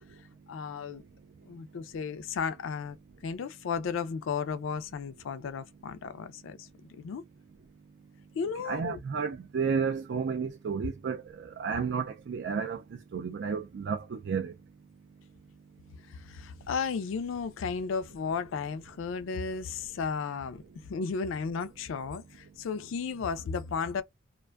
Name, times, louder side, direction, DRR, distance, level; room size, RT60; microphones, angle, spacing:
voice 1, 0.5-1.0 1.5-3.0 3.2-7.2 8.3-9.0 16.1-20.6 20.9-24.0, left 5 dB, 75° left, 0.3 m, -34 dB
voice 2, 8.6-12.8 13.1-14.5, right 6 dB, 60° right, 0.3 m, -32 dB
2.5 x 2.2 x 2.3 m
head